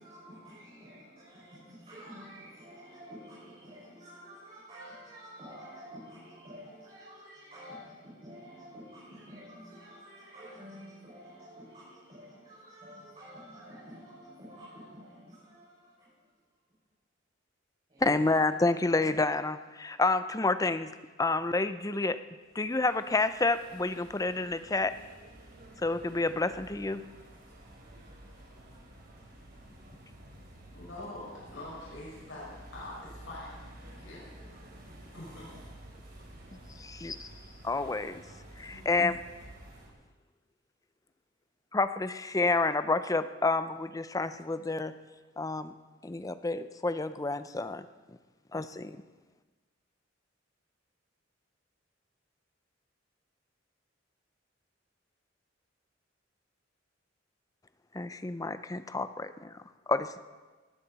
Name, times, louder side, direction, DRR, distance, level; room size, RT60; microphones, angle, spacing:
voice 1, 0.0-16.2 17.9-18.5, equal, 30° right, -9 dB, 5.6 m, -49 dB
voice 2, 18.0-20.9 21.2-22.2 22.6-24.9 25.8-27.0 36.8-37.3 37.6-38.2 38.6-39.2 41.7-44.9 45.4-45.8 46.0-47.9 48.5-49.0 57.9-59.5 59.9-60.1, left 3 dB, 20° left, 12 dB, 0.5 m, -29 dB
sound 1, 22.5-39.9, right 1 dB, 50° right, 3.5 m, -51 dB
voice 3, 30.7-32.5 32.7-33.5 33.8-34.2 35.1-35.5 36.9-37.5 37.8-37.9 38.7-39.0, left 1 dB, 75° left, -7 dB, 6.0 m, -45 dB
19.0 x 15.5 x 4.1 m, 1.3 s
head